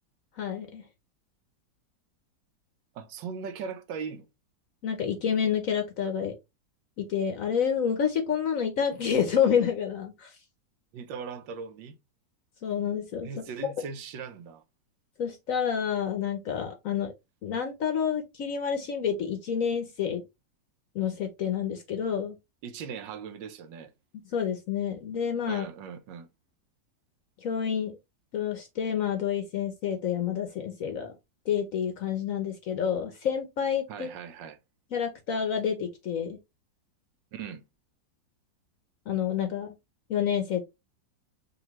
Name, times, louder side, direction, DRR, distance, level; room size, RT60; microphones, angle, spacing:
voice 1, 0.4-0.8 4.8-6.3 7.0-10.3 12.6-13.3 15.2-17.1 17.4-20.2 20.9-22.4 24.3-25.7 27.4-28.0 28.3-31.1 31.5-34.1 34.9-36.4 39.1-39.7 40.1-40.6, left 8 dB, 60° left, 0.9 m, -28 dB
voice 2, 2.9-4.3 10.9-12.0 13.2-14.6 22.6-23.9 25.5-26.3 33.9-34.6 37.3-37.6, right 6 dB, 80° right, 1.4 m, -39 dB
5.3 x 2.6 x 3.0 m
omnidirectional pair, 2.0 m